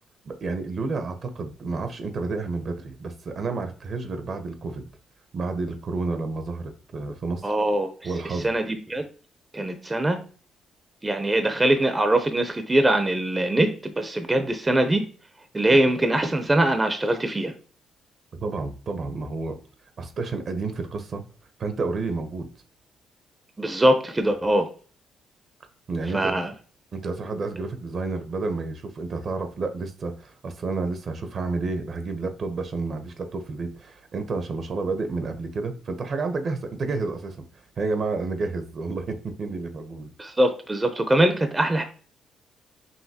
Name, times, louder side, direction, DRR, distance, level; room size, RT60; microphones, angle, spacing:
voice 1, 0.2-4.8 5.3-7.5 8.0-8.5 18.4-19.6 20.0-21.2 21.6-22.5 25.9-26.4 26.9-37.4 37.8-40.1, right 3 dB, 50° right, 7 dB, 0.7 m, -30 dB
voice 2, 7.4-7.9 8.4-9.1 9.5-10.2 11.0-15.0 15.5-17.5 23.6-24.7 26.1-26.5 40.2-41.8, right 1 dB, 20° right, 7 dB, 0.6 m, -22 dB
5.7 x 2.6 x 2.8 m, 0.40 s
cardioid pair, 90°, 0 cm